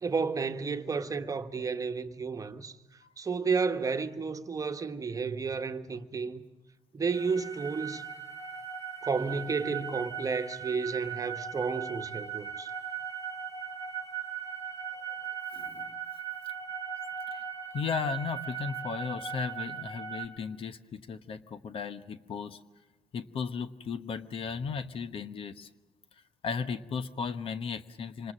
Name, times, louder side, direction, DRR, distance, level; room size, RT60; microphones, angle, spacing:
voice 1, 0.0-2.8 3.2-6.4 6.9-8.0 9.0-12.7 15.6-15.8, right 5 dB, 30° right, 1.4 m, -32 dB
sound 1, 7.1-20.3, right 7 dB, 30° left, 6.7 m, -38 dB
voice 2, 17.7-22.6 23.1-25.7 26.4-28.3, left 6 dB, 55° left, 1.1 m, -35 dB
26.0 x 20.0 x 7.4 m
supercardioid pair, 75°, 11 cm